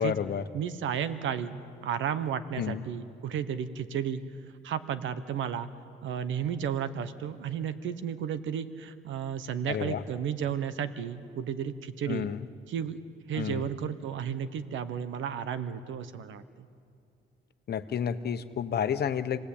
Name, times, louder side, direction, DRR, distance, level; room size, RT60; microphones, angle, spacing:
voice 1, 0.0-0.5 2.6-2.8 9.7-10.0 12.1-12.5 13.3-13.7 17.7-19.4, left 8 dB, 55° left, 11 dB, 1.2 m, -30 dB
voice 2, 0.5-4.2 4.6-5.7 6.0-12.3 12.7-13.0 13.3-16.7, right 8 dB, 75° right, 12 dB, 1.2 m, -33 dB
29.0 x 19.0 x 8.7 m, 2.3 s
cardioid pair, 90°, 20 cm